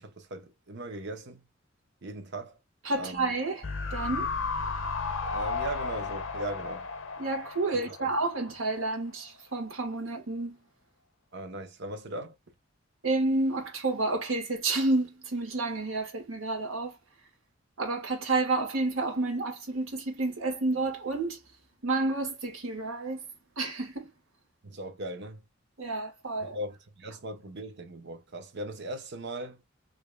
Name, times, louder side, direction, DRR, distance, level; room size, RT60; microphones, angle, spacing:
voice 1, 0.0-1.4 2.0-2.6 3.0-3.3 5.2-6.9 8.0-8.1 11.3-12.4 24.6-25.4 26.5-29.6, right 1 dB, 60° right, 0.8 m, -39 dB
voice 2, 2.8-3.6 3.9-4.3 7.2-10.6 13.0-17.0 17.8-21.4 21.8-23.2 23.6-24.1 25.8-26.6, right 2 dB, 85° right, 1.5 m, -30 dB
sound 1, 3.6-8.9 9.2-9.3, left 4 dB, 75° left, 0.8 m, -34 dB
4.9 x 2.7 x 2.2 m
head